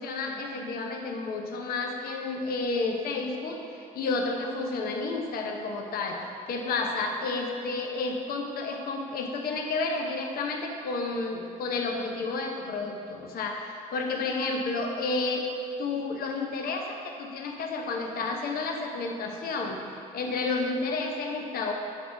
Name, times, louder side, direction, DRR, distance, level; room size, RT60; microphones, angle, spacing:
voice 1, 0.0-15.4 15.8-21.7, left 3 dB, 65° left, 2 dB, 0.9 m, -31 dB
9.1 x 6.0 x 3.5 m, 2.4 s
cardioid pair, 80°, 16 cm